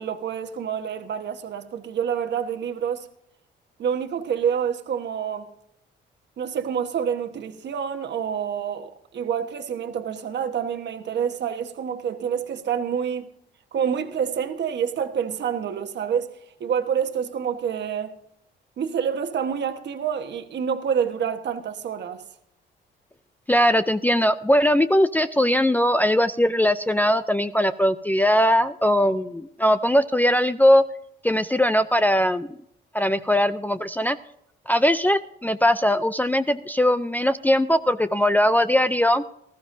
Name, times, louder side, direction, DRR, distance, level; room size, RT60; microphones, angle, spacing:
voice 1, 0.0-3.1 3.8-5.5 6.4-13.3 13.7-16.3 16.6-18.1 18.8-22.2, right 8 dB, 60° right, 1.2 m, -27 dB
voice 2, 23.5-30.8 31.2-32.6 32.9-34.2 34.7-39.2, equal, 10° left, 0.4 m, -20 dB
19.5 x 13.5 x 2.6 m
cardioid pair, 90°, 20 cm